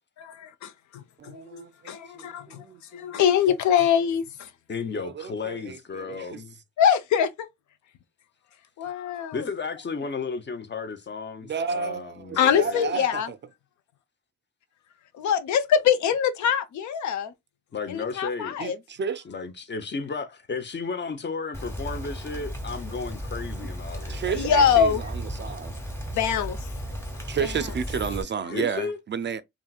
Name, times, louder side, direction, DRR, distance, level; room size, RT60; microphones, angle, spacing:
voice 1, 0.2-2.6 2.9-4.5 6.8-7.5 8.8-9.5 12.4-13.3 15.1-17.3 17.9-18.8 24.3-25.0 25.5-25.6 26.1-26.7 27.4-27.6, left 8 dB, 75° left, 0.5 m, -24 dB
voice 2, 1.2-3.2 5.0-6.4 11.5-13.4 18.6-19.2 24.1-25.8 27.3-29.4, right 6 dB, 40° right, 0.4 m, -32 dB
voice 3, 4.7-6.5 9.3-12.9 17.7-18.6 19.2-24.7 28.5-29.0, left 4 dB, 40° left, 0.7 m, -33 dB
Rain, 21.5-28.2, equal, 10° left, 1.2 m, -35 dB
2.8 x 2.5 x 2.3 m
supercardioid pair, 40°, 29 cm